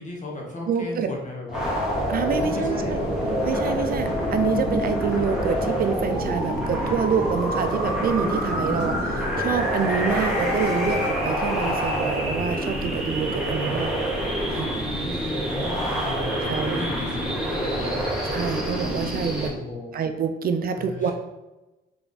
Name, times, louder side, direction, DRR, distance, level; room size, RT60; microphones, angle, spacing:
voice 1, 0.0-3.2 8.5-9.1 13.6-13.9 14.8-18.1 19.4-20.0 20.8-21.1, left 2 dB, 40° left, -1 dB, 1.3 m, -36 dB
voice 2, 0.7-1.1 2.1-3.0 3.4-9.1 9.4-14.1 14.5-14.7 16.5-16.8 18.2-19.5 19.9-21.1, right 6 dB, 50° right, 8 dB, 0.4 m, -27 dB
sound 1, 1.5-19.5, equal, 5° right, 1.3 m, -26 dB
sound 2, 2.4-11.1, left 4 dB, 65° left, 1.1 m, -36 dB
3.5 x 3.4 x 3.9 m, 1.0 s
cardioid pair, 90°, 20 cm